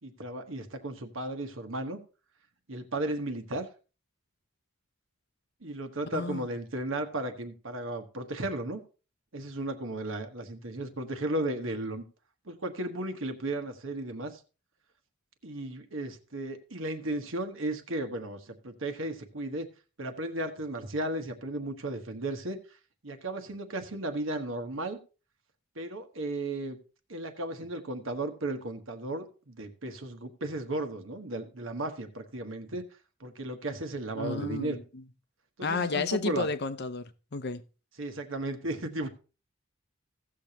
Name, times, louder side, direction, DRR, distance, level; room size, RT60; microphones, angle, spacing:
voice 1, 0.0-2.0 2.7-3.7 5.6-8.8 9.3-12.0 12.4-14.4 15.4-19.7 20.0-22.6 23.0-25.0 25.7-26.8 27.1-32.8 33.2-34.8 35.6-36.5 38.0-39.1, right 1 dB, 65° right, 1.3 m, -35 dB
voice 2, 6.1-6.5 34.1-35.0 35.6-37.6, left 3 dB, 50° left, 0.7 m, -32 dB
16.5 x 6.7 x 2.9 m
head